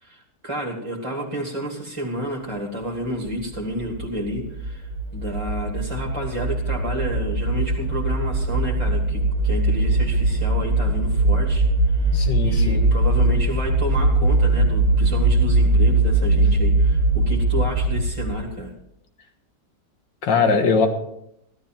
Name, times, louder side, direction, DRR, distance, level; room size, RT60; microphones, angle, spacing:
voice 1, 0.0-18.7, equal, 15° right, -2 dB, 2.0 m, -30 dB
sound 1, 3.3-18.6, right 2 dB, 45° right, 1.8 m, -21 dB
voice 2, 12.1-12.9 20.2-20.9, left 5 dB, 85° left, 5 dB, 2.2 m, -20 dB
15.0 x 12.5 x 4.5 m, 0.78 s
omnidirectional pair, 1.9 m